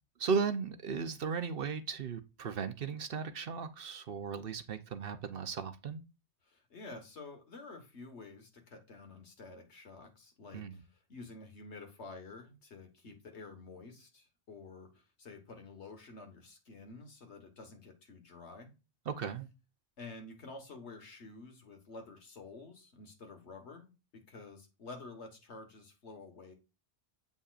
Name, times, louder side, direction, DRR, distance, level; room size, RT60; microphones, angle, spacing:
voice 1, 0.2-6.0 10.5-10.8 19.1-19.5, right 5 dB, 60° right, 0.9 m, -36 dB
voice 2, 6.5-18.7 20.0-26.5, left 3 dB, 75° left, 1.8 m, -50 dB
8.3 x 5.3 x 2.5 m
omnidirectional pair, 1.2 m